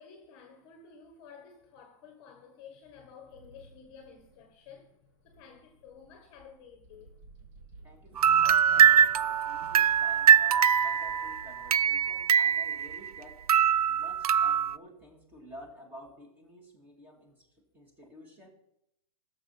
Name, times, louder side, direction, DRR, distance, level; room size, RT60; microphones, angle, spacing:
voice 1, 0.0-7.1, left 6 dB, 25° left, 1.4 m, -52 dB
sound 1, 3.3-13.5, right 2 dB, 30° right, 2.5 m, -55 dB
voice 2, 7.8-13.4 13.9-17.5 17.7-18.5, equal, 10° right, 2.0 m, -51 dB
sound 2, 8.2-13.2 13.5-14.8, right 8 dB, 85° right, 0.5 m, -23 dB
15.0 x 6.9 x 5.7 m
hypercardioid pair, 165°, 19 cm